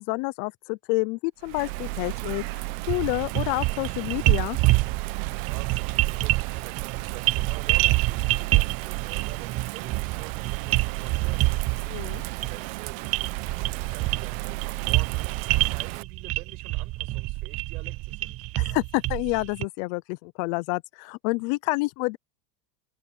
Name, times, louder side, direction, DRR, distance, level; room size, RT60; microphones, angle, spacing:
voice 1, 0.0-4.6 11.9-12.2 18.6-22.2, left 26 dB, 55° left, 0.6 m, -28 dB
Bird vocalization bird call bird song / Rain, 1.4-16.0, right 22 dB, 60° right, 1.3 m, -34 dB
sound 1, 2.9-19.7, right 19 dB, 30° right, 0.5 m, -27 dB
voice 2, 5.2-11.6 11.9-18.4, right 19 dB, 90° right, 7.7 m, -47 dB
supercardioid pair, 150°, 45 cm